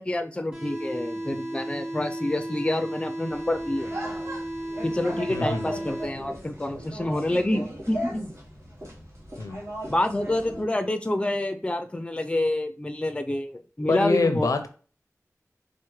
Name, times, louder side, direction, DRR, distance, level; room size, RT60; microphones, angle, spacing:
voice 1, 0.0-3.9 4.8-8.3 9.9-14.5, left 1 dB, 20° left, 7 dB, 0.4 m, -27 dB
sound 1, 0.5-6.5, right 1 dB, 20° right, 1.6 m, -34 dB
sound 2, 3.3-10.6, equal, 55° right, 1.2 m, -37 dB
voice 2, 5.3-5.9 9.4-9.6 13.9-14.7, left 3 dB, 85° left, 8 dB, 0.5 m, -26 dB
4.3 x 2.1 x 3.1 m, 0.38 s
wide cardioid pair, 65°, 6 cm